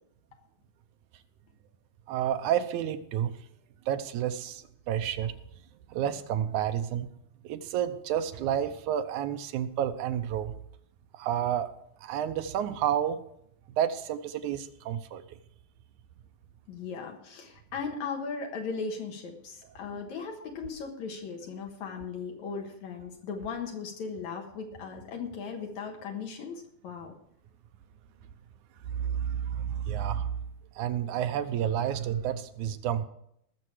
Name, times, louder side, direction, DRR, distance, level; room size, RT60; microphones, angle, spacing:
voice 1, 2.1-3.4 3.9-5.3 5.9-7.1 7.4-10.5 11.1-11.7 12.0-13.2 13.7-15.4 28.9-30.4 30.8-33.1, right 10 dB, 80° right, 10 dB, 2.2 m, -30 dB
voice 2, 16.7-27.1, left 5 dB, 75° left, 2 dB, 2.7 m, -37 dB
19.5 x 6.9 x 4.8 m, 0.72 s
omnidirectional pair, 3.4 m